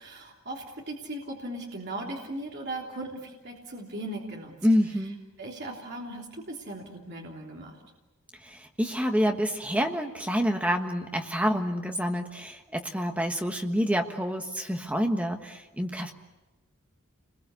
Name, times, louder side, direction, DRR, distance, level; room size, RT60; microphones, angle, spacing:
voice 1, 0.0-4.5 5.4-7.8, right 1 dB, 50° right, -1 dB, 3.2 m, -38 dB
voice 2, 4.6-5.2 8.4-16.1, equal, 5° right, 4 dB, 1.4 m, -27 dB
29.5 x 21.5 x 8.3 m, 1.1 s
head